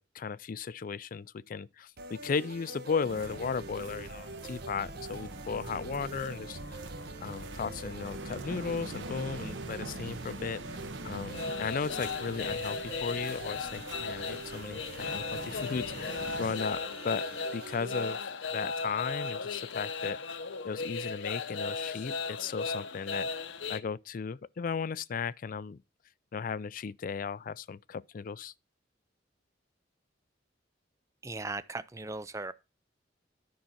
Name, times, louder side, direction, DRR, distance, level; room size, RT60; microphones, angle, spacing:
voice 1, 0.0-6.8 7.2-10.8 11.0-17.2 17.5-18.2 18.5-20.2 20.6-23.3 23.7-25.8 26.3-28.5, left 5 dB, 45° left, 0.4 m, -36 dB
sound 1, 2.0-18.1, right 2 dB, 55° right, 1.3 m, -45 dB
sound 2, 3.1-16.5, right 2 dB, 80° right, 1.1 m, -44 dB
sound 3, 11.3-23.8, left 4 dB, 75° left, 0.8 m, -36 dB
voice 2, 31.2-32.5, right 2 dB, 15° right, 0.5 m, -38 dB
10.5 x 5.7 x 4.2 m
head